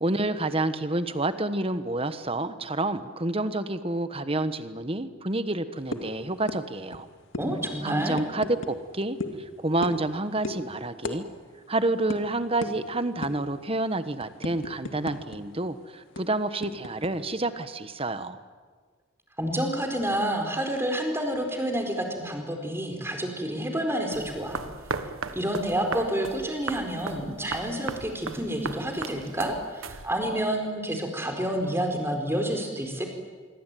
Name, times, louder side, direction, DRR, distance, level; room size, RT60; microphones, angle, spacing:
voice 1, 0.0-7.1 7.8-11.2 11.7-18.4, right 2 dB, 30° right, 11 dB, 1.3 m, -29 dB
sound 1, 5.9-6.1 6.5-6.6 6.9-7.0 7.3-7.5 8.1-8.7 9.2-9.4 9.8-10.1 10.4-10.6 11.0-11.2 11.5-11.6 12.1-12.2 12.6-12.7 13.2-13.5 13.9-15.4 15.6-15.7 16.2-17.1, left 2 dB, 65° left, 2.4 m, -34 dB
voice 2, 7.4-8.2 19.4-24.6 25.3-33.1, right 1 dB, 10° right, 3 dB, 4.5 m, -29 dB
sound 2, 24.1-30.4, right 4 dB, 85° right, 1.4 m, -37 dB
26.0 x 23.5 x 9.3 m, 1.5 s
head